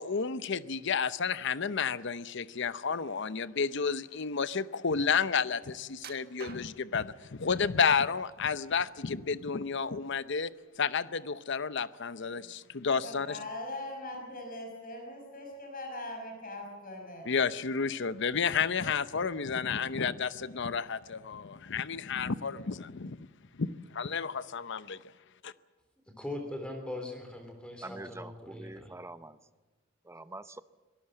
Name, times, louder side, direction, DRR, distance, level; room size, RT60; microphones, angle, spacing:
voice 1, 0.0-10.5 10.8-13.4 17.3-23.2 23.6-25.0 25.4-25.5, left 6 dB, 65° left, 0.8 m, -31 dB
sound 1, 6.0-7.0 7.7-8.4 8.8-9.7 10.0-10.2 10.7-10.8, right 6 dB, 50° right, 1.5 m, -49 dB
voice 2, 13.0-17.3, left 1 dB, 45° left, 5.8 m, -41 dB
voice 3, 26.2-28.9, left 1 dB, 5° left, 3.4 m, -40 dB
voice 4, 27.8-29.4 30.0-30.6, right 2 dB, 15° right, 0.7 m, -45 dB
25.0 x 18.5 x 7.8 m
head